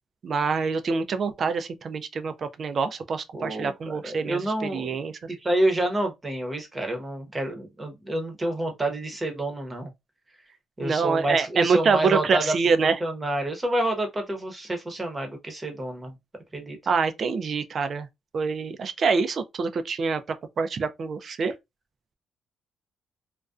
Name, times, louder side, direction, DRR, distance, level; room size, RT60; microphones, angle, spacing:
voice 1, 0.2-5.1 10.8-13.0 16.9-18.1 18.3-21.5, right 5 dB, 50° right, 0.4 m, -25 dB
voice 2, 3.3-5.0 5.3-9.9 10.8-12.6 12.8-16.1 16.5-16.8, right 1 dB, 20° right, 0.8 m, -28 dB
2.4 x 2.2 x 2.3 m
cardioid pair, 90°, 0 cm